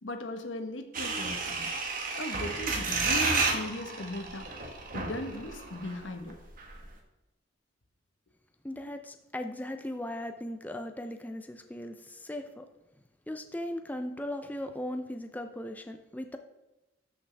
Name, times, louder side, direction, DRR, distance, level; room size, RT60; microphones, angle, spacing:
voice 1, 0.0-1.7 2.1-4.5 4.9-6.4, left 1 dB, 80° left, 6 dB, 1.1 m, -38 dB
sound 1, 0.9-6.0 6.3-6.4 6.6-6.9, right 3 dB, 45° right, 1.4 m, -31 dB
voice 2, 8.6-12.7 13.3-16.4, left 1 dB, 10° left, 6 dB, 0.5 m, -38 dB
13.0 x 6.0 x 3.4 m, 1.0 s
head